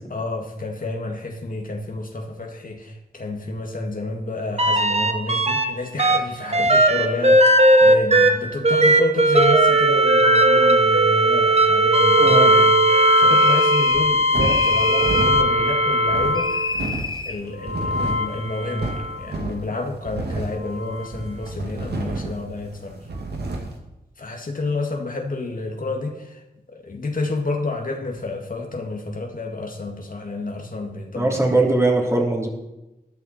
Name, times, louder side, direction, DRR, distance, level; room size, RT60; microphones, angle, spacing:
voice 1, 0.1-12.7 13.2-23.0 24.2-26.4 26.7-31.4, left 2 dB, 55° left, 2 dB, 1.9 m, -30 dB
sound 1, 4.6-5.7 6.0-16.8 17.6-19.2 20.9-21.0, right 1 dB, 40° right, 1.3 m, -17 dB
voice 2, 12.2-12.5 31.1-32.5, right 2 dB, 15° right, -1 dB, 3.4 m, -20 dB
sound 2, 13.3-14.1 14.4-15.4 16.3-17.4, left 2 dB, 25° left, 1.2 m, -29 dB
sound 3, 13.9-23.8, right 2 dB, 85° right, 1.9 m, -31 dB
13.5 x 11.0 x 4.3 m, 0.98 s
cardioid pair, 55°, 17 cm